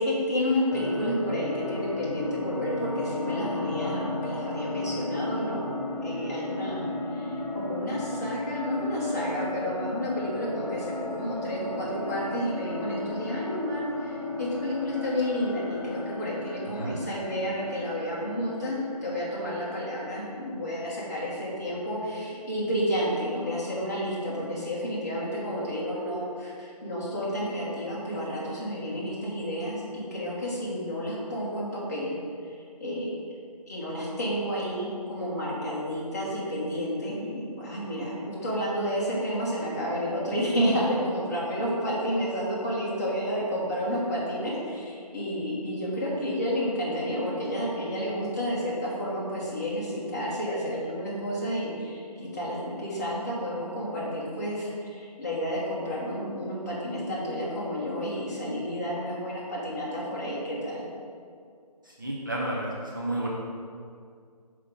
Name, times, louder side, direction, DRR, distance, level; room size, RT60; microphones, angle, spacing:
voice 1, 0.0-5.6 6.0-32.1 32.4-32.5 32.8-33.2 33.7-60.8, equal, 25° left, -8 dB, 1.6 m, -31 dB
sound 1, 0.7-19.6, left 2 dB, 50° left, 1.8 m, -34 dB
voice 2, 62.0-63.3, right 1 dB, 30° right, -4 dB, 0.7 m, -31 dB
5.6 x 5.0 x 5.3 m, 2.2 s
figure-of-eight pair, 175°, 21 cm